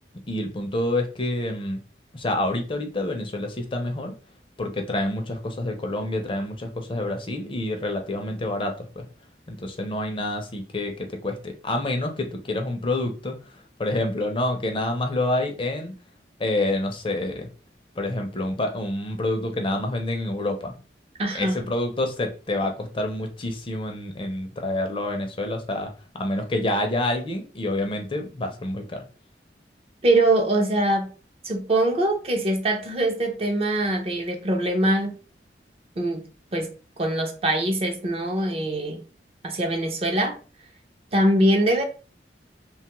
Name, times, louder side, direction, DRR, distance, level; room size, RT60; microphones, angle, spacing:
voice 1, 0.3-1.8 2.1-4.1 4.6-9.1 9.5-15.9 16.4-17.5 18.0-20.8 21.3-25.9 26.1-29.0, left 1 dB, 30° left, 0.5 m, -28 dB
voice 2, 21.2-21.6 30.0-31.1 31.4-35.1 36.0-36.2 36.5-36.7 37.0-39.0 39.4-40.4 41.1-41.8, right 1 dB, 35° right, 0.5 m, -23 dB
3.0 x 2.2 x 2.9 m
head